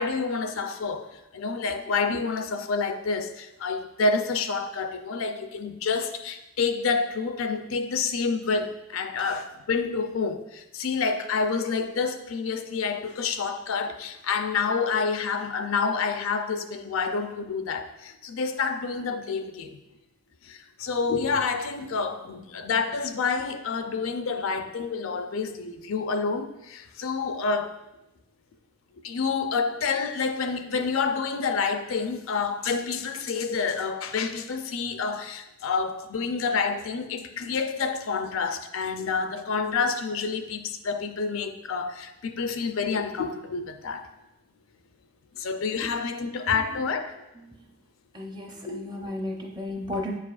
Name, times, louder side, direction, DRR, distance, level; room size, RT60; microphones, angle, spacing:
voice 1, 0.0-19.8 20.4-27.7 29.0-44.1 45.4-47.2 48.6-49.1, left 4 dB, 75° left, 7 dB, 0.5 m, -28 dB
voice 2, 48.1-50.2, left 1 dB, 20° right, 1 dB, 0.7 m, -34 dB
8.5 x 4.8 x 2.4 m, 0.92 s
head